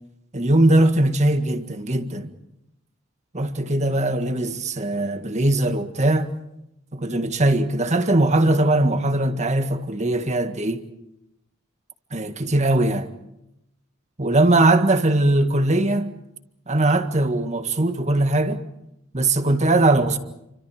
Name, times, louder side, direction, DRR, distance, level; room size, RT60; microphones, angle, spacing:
voice 1, 0.3-2.3 3.3-6.3 6.9-10.8 12.1-13.1 14.2-16.1 16.7-18.6 19.1-20.2, right 2 dB, 35° right, 1.8 m, -20 dB
29.5 x 25.5 x 5.0 m
head